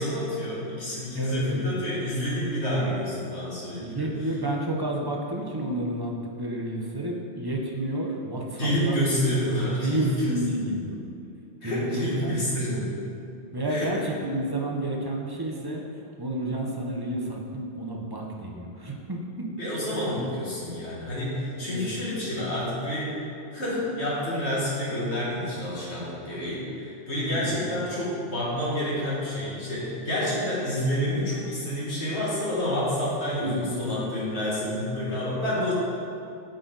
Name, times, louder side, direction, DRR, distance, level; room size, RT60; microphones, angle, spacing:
voice 1, 0.0-4.1 8.6-10.3 11.6-12.9 13.7-14.1 19.6-23.1 23.5-35.7, equal, 55° left, -7 dB, 2.3 m, -28 dB
voice 2, 1.1-1.7 3.8-9.3 9.6-11.0 11.6-13.0 13.5-15.8 16.2-19.5 21.7-21.9 27.3-27.8 33.4-33.8, right 1 dB, 25° right, -1 dB, 0.6 m, -31 dB
8.2 x 6.5 x 3.9 m, 2.6 s
omnidirectional pair, 1.4 m